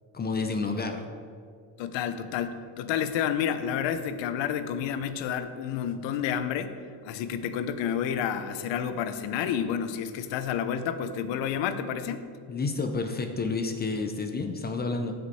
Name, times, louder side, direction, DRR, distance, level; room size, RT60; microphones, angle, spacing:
voice 1, 0.1-1.0 12.5-15.1, left 3 dB, 20° left, 6 dB, 0.6 m, -30 dB
voice 2, 1.8-6.7 7.0-12.2, left 8 dB, 80° left, 10 dB, 0.9 m, -30 dB
15.5 x 5.3 x 4.2 m, 2.2 s
cardioid pair, 140°, 44 cm